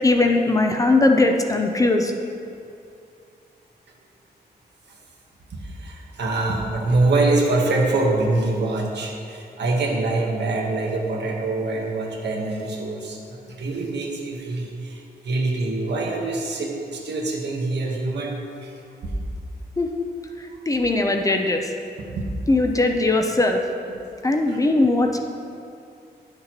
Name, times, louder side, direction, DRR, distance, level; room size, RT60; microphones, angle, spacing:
voice 1, 0.0-2.1 19.8-19.9 20.7-21.7 22.5-23.6 24.2-25.2, left 2 dB, 20° left, 3 dB, 0.5 m, -19 dB
voice 2, 5.5-18.7 22.0-22.3 24.5-24.6, right 2 dB, 90° right, -1 dB, 1.2 m, -24 dB
10.5 x 6.6 x 2.9 m, 2.5 s
wide cardioid pair, 165°, 17 cm